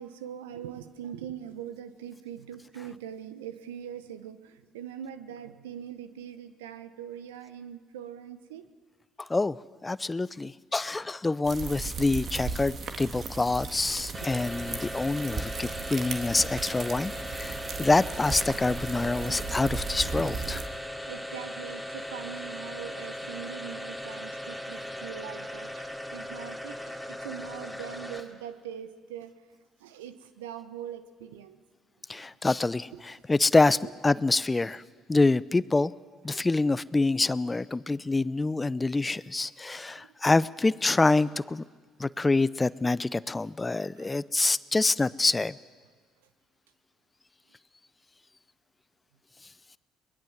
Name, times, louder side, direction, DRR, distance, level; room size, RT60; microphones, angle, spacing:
voice 1, 0.0-8.7 14.2-14.3 19.2-19.4 19.9-20.1 21.1-29.3 29.8-31.6 32.9-33.0 33.8-33.9 44.0-44.1, right 9 dB, 85° right, 12 dB, 1.0 m, -42 dB
voice 2, 9.2-9.6 9.8-20.6 32.1-33.8 34.0-34.8 35.1-35.9 36.2-41.6 42.0-45.5, left 3 dB, 20° left, 19 dB, 0.6 m, -26 dB
sound 1, 11.4-20.7, right 4 dB, 50° right, 2.0 m, -36 dB
sound 2, 14.1-28.5, left 1 dB, 5° right, 3.0 m, -38 dB
23.0 x 20.5 x 7.4 m, 1.5 s
hypercardioid pair, 55°, 0 cm